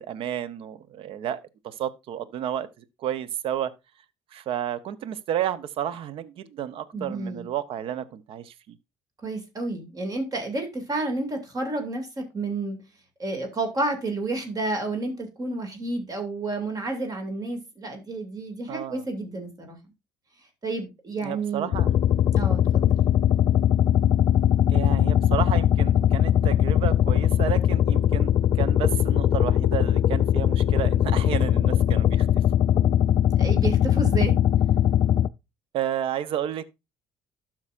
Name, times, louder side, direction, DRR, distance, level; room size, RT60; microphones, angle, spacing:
voice 1, 0.0-1.4 1.6-3.7 4.3-8.8 18.7-19.0 21.2-21.9 24.7-32.3 35.7-36.6, right 10 dB, 60° right, 0.7 m, -31 dB
voice 2, 6.9-7.5 9.2-12.8 13.2-19.8 20.6-21.7 22.4-22.8 33.4-34.4, right 2 dB, 35° right, 2.3 m, -30 dB
sound 1, 21.7-35.3, left 10 dB, 50° left, 0.4 m, -20 dB
12.0 x 5.9 x 2.5 m
hypercardioid pair, 65°, 11 cm